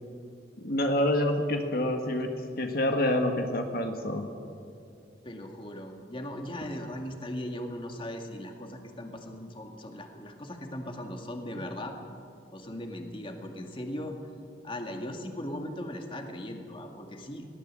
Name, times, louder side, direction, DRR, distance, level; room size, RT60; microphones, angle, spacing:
voice 1, 0.6-2.3 2.6-4.3, left 1 dB, 55° left, 4 dB, 1.7 m, -27 dB
voice 2, 5.2-11.9 12.5-14.2 14.6-17.5, left 1 dB, 30° left, 3 dB, 2.0 m, -38 dB
21.5 x 18.0 x 7.6 m, 2.4 s
head